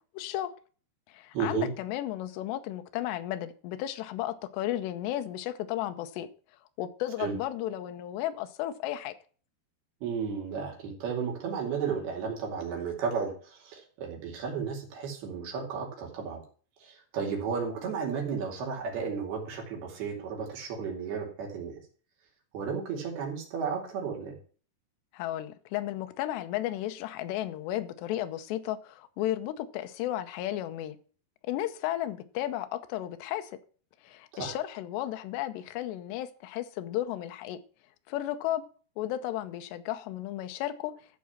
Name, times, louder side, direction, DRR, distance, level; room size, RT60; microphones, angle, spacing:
voice 1, 0.1-0.5 1.1-6.3 6.8-9.1 25.1-31.0 31.4-33.6 34.0-37.6 38.1-38.6 39.0-40.9, left 13 dB, 85° left, 3.0 m, -34 dB
voice 2, 1.3-1.7 7.2-7.4 10.0-16.4 16.8-21.8 22.5-24.4 34.3-34.6, right 6 dB, 65° right, 4.4 m, -33 dB
13.5 x 4.7 x 7.2 m
omnidirectional pair, 4.9 m